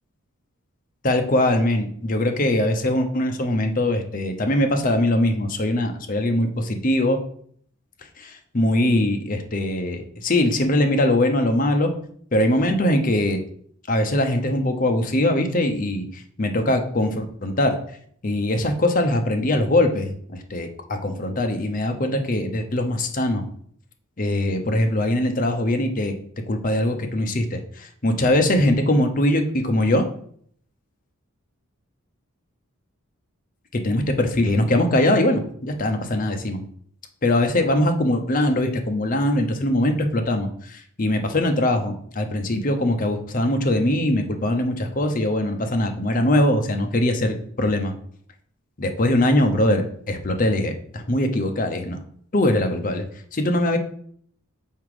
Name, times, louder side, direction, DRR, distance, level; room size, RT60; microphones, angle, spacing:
voice 1, 1.0-7.2 8.2-11.9 12.3-13.4 13.9-17.8 18.2-23.4 24.2-26.1 26.5-30.1 33.7-36.6 37.2-47.9 48.8-52.0 52.3-53.0 53.3-53.8, left 1 dB, 40° left, 5 dB, 0.7 m, -22 dB
5.6 x 4.9 x 4.8 m, 0.62 s
head